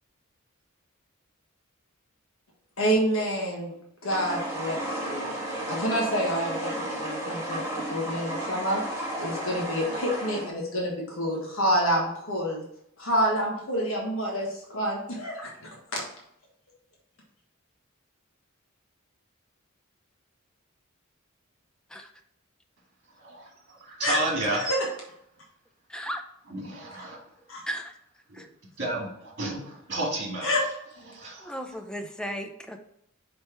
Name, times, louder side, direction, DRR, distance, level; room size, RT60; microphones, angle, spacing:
voice 1, 2.8-3.7 4.0-7.7 7.9-8.8 9.2-12.6 13.0-16.0 24.0-24.2 24.6-24.8 27.5-27.6 30.4-30.6, equal, 70° left, -2 dB, 1.6 m, -28 dB
sound 1, 4.1-10.5, right 1 dB, 15° right, 1.6 m, -33 dB
voice 2, 23.2-24.7 26.5-27.2 28.3-28.4 28.8-30.7 31.0-31.6, right 2 dB, 50° right, -1 dB, 1.9 m, -32 dB
voice 3, 25.9-26.2 27.6-28.0 28.3-28.5 31.4-32.8, equal, 5° left, 5 dB, 0.5 m, -35 dB
5.1 x 4.3 x 4.5 m, 0.76 s
head